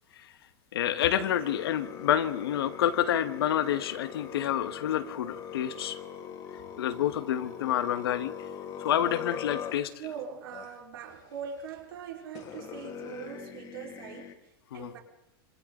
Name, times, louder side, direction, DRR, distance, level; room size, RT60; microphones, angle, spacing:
voice 1, 0.7-6.0 6.8-8.3 8.8-9.9 14.7-14.9, left 10 dB, 90° left, 1.7 m, -28 dB
sound 1, 1.0-10.1 10.5-10.8 11.8-11.9 12.3-14.3, left 8 dB, 30° left, 2.6 m, -41 dB
voice 2, 10.0-15.0, right 7 dB, 80° right, 5.0 m, -42 dB
26.5 x 25.5 x 4.0 m
supercardioid pair, 155°, 12 cm